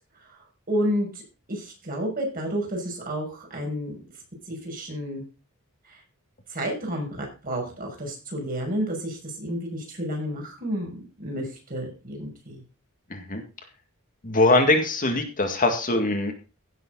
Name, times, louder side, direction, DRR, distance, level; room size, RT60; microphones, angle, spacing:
voice 1, 0.7-1.2 1.5-4.0 4.5-5.2 5.9-6.0 6.5-12.6, equal, 40° right, 1 dB, 6.1 m, -30 dB
voice 2, 13.1-13.4 14.2-16.3, left 2 dB, 40° left, 5 dB, 2.0 m, -22 dB
16.0 x 7.5 x 3.9 m, 0.32 s
head